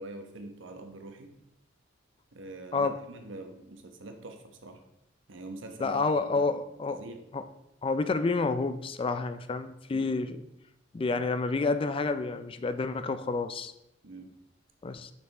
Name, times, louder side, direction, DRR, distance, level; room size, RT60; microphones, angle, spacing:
voice 1, 0.0-1.3 2.3-4.8 5.3-6.5 6.9-7.2 9.9-10.2 14.0-14.3, right 2 dB, 85° right, 5 dB, 1.0 m, -44 dB
voice 2, 5.8-7.0 7.3-7.4 7.8-10.4 10.9-13.7 14.8-15.1, left 3 dB, 30° left, 11 dB, 0.3 m, -29 dB
7.1 x 5.9 x 3.3 m, 0.82 s
head